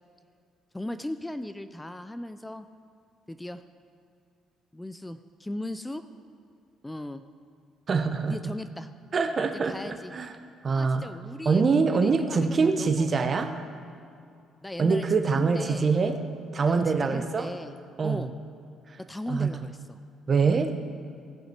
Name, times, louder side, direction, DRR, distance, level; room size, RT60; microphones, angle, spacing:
voice 1, 0.7-2.7 3.3-3.6 4.7-6.0 6.8-7.2 8.3-8.9 9.6-10.2 10.7-13.1 14.6-15.9 16.7-17.8 18.0-18.3 19.0-20.0, left 1 dB, 10° left, 11 dB, 0.4 m, -37 dB
voice 2, 7.9-8.5 9.1-10.3 10.6-11.1 11.4-13.5 14.8-16.2 16.5-17.5 18.0-18.3 19.3-19.5 20.3-20.7, right 4 dB, 40° right, 7 dB, 0.9 m, -24 dB
17.0 x 5.7 x 4.5 m, 2.4 s
cardioid pair, 95°, 0 cm